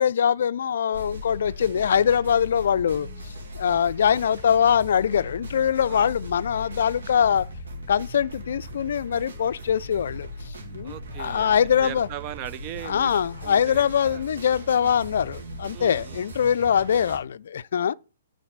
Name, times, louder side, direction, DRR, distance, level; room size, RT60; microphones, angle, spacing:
voice 1, 0.0-7.5 7.9-10.9 11.2-12.1 12.8-17.9, left 8 dB, 65° left, 0.4 m, -23 dB
sound 1, 0.9-17.2, equal, 80° right, 2.3 m, -39 dB
voice 2, 10.8-13.1 13.4-14.2 15.7-16.2, right 12 dB, 35° right, 0.6 m, -39 dB
9.8 x 4.0 x 6.5 m
hypercardioid pair, 130°, 0 cm